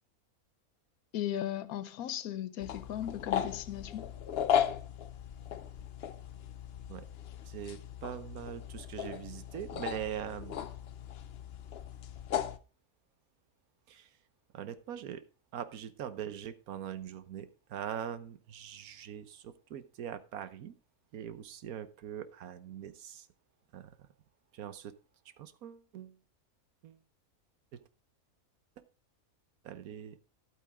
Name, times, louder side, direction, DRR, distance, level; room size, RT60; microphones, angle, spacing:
voice 1, 1.1-4.1, left 11 dB, 85° left, 1.2 m, -37 dB
sound 1, 2.6-12.6, left 9 dB, 55° left, 0.7 m, -36 dB
voice 2, 7.4-10.6 13.9-14.2 14.5-15.2 15.5-20.8 21.1-23.3 23.7-24.1 24.5-24.9 25.4-26.2 26.8-27.0 27.7-27.8 29.6-30.2, right 9 dB, 85° right, 1.3 m, -42 dB
11.5 x 8.6 x 3.5 m
omnidirectional pair, 1.5 m